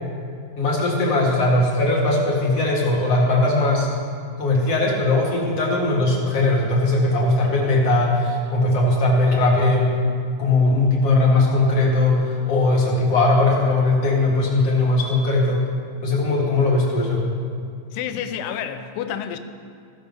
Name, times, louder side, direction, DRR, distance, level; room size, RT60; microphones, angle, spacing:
voice 1, 0.6-3.9 4.4-9.9 10.4-15.7 16.0-17.2, left 2 dB, 45° left, -3 dB, 2.4 m, -19 dB
voice 2, 17.9-19.4, left 9 dB, 80° left, 9 dB, 2.2 m, -29 dB
16.0 x 6.8 x 5.3 m, 2.4 s
omnidirectional pair, 4.3 m